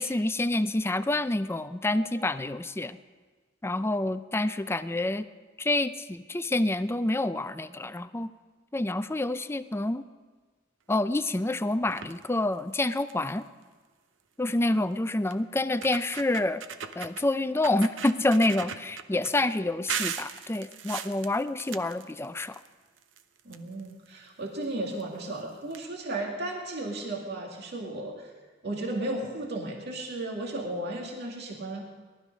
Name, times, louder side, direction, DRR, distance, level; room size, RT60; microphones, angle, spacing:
voice 1, 0.0-3.0 3.6-5.3 5.6-8.3 8.7-10.0 10.9-13.4 14.4-16.6 17.0-22.6, left 2 dB, 15° left, 13 dB, 0.4 m, -27 dB
sound 1, 11.9-12.2 12.7-12.8 13.1-13.4 14.6-14.7 15.3-15.4 15.7-17.2 17.6-19.3 19.9-22.7 23.0-24.1 25.0-25.1 25.3-25.4 25.7-25.8, right 7 dB, 80° right, 0.8 m, -37 dB
voice 2, 23.4-28.3 28.6-31.8, right 2 dB, 60° right, 0 dB, 2.1 m, -34 dB
19.0 x 12.5 x 5.3 m, 1.4 s
head